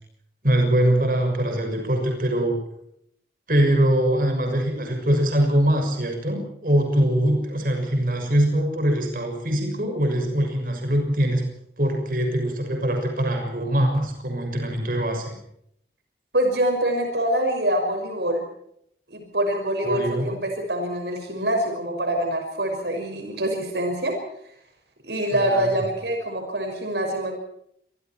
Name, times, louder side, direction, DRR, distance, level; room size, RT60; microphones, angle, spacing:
voice 1, 0.4-2.6 3.5-11.5 11.8-15.3 19.8-20.3 25.3-25.7, right 1 dB, 50° right, 3 dB, 6.5 m, -22 dB
voice 2, 16.3-18.5 19.1-24.2 25.0-27.3, right 1 dB, 75° right, 4 dB, 6.1 m, -25 dB
27.0 x 23.0 x 4.6 m, 0.72 s
head